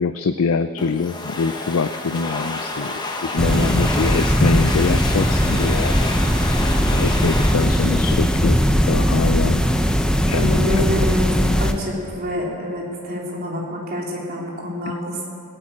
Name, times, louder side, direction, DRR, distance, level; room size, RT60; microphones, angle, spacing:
voice 1, 0.0-6.1 6.9-9.6 10.3-10.8, left 4 dB, 70° left, 10 dB, 0.5 m, -24 dB
Domestic sounds home sounds, 0.8-9.2, left 2 dB, 20° left, 1.2 m, -30 dB
sound 1, 3.4-11.7, equal, 5° left, 0.7 m, -19 dB
voice 2, 10.3-15.3, left 1 dB, 45° right, -3 dB, 3.3 m, -26 dB
17.0 x 8.9 x 8.7 m, 2.4 s
head